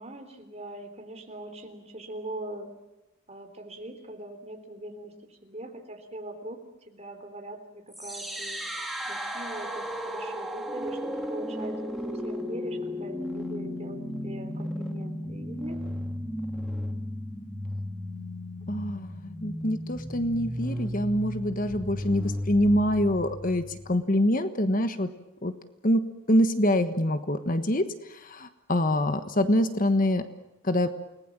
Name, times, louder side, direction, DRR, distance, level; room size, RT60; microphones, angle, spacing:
voice 1, 0.0-2.7 3.3-5.1 5.4-15.8, right 1 dB, 30° right, 5 dB, 3.7 m, -42 dB
sound 1, 7.9-23.9, equal, ahead, 2.7 m, -34 dB
voice 2, 18.7-23.6 23.9-25.1 25.4-25.5 25.8-30.2 30.6-30.9, left 1 dB, 40° left, 10 dB, 1.3 m, -25 dB
29.5 x 19.5 x 7.4 m, 0.97 s
head